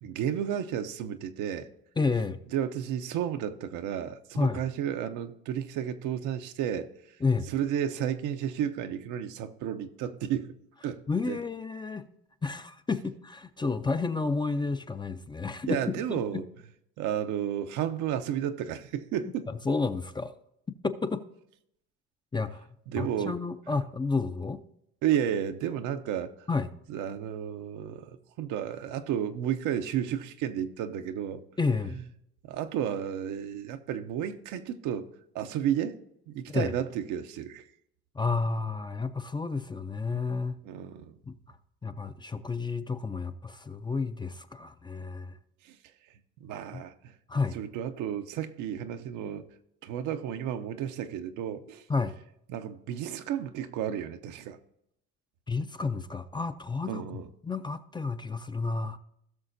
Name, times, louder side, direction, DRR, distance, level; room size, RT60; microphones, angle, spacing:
voice 1, 0.0-1.7 2.5-6.9 7.5-10.6 10.8-11.4 15.7-16.4 17.0-19.5 22.9-23.4 25.0-26.3 26.9-31.4 31.9-32.0 32.4-35.1 35.3-36.0 36.3-37.6 40.6-41.2 45.6-45.8 46.4-47.1 47.5-49.5 49.8-51.8 52.5-54.6 56.9-57.3, right 9 dB, 70° right, 0.8 m, -32 dB
voice 2, 2.0-2.4 4.4-4.6 7.2-7.5 11.1-12.0 12.4-15.8 16.1-16.2 19.7-20.3 20.8-21.3 22.3-22.7 23.0-24.6 26.5-26.7 31.6-32.0 36.5-36.7 38.1-40.6 41.3-41.4 41.8-45.4 46.7-46.8 47.3-47.6 51.9-52.2 55.5-59.0, left 4 dB, 15° left, 0.5 m, -31 dB
17.5 x 6.2 x 2.6 m
supercardioid pair, 90°, 31 cm